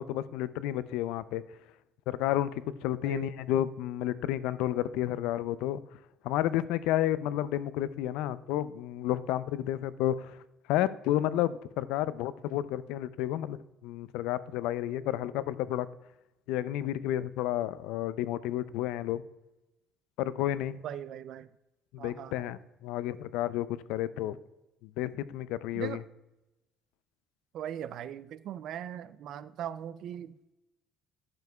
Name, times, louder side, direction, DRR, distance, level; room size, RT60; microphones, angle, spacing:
voice 1, 0.0-1.4 2.1-5.8 6.2-10.4 10.7-13.6 13.8-15.9 16.5-19.2 20.2-20.8 21.9-24.4 24.8-26.0, left 13 dB, 80° left, 16 dB, 0.4 m, -31 dB
voice 2, 3.0-3.3 20.8-21.5 22.0-22.4 25.7-26.0 27.5-30.4, right 10 dB, 50° right, 15 dB, 0.3 m, -39 dB
11.0 x 7.0 x 2.2 m, 0.97 s
cardioid pair, 170°, 0 cm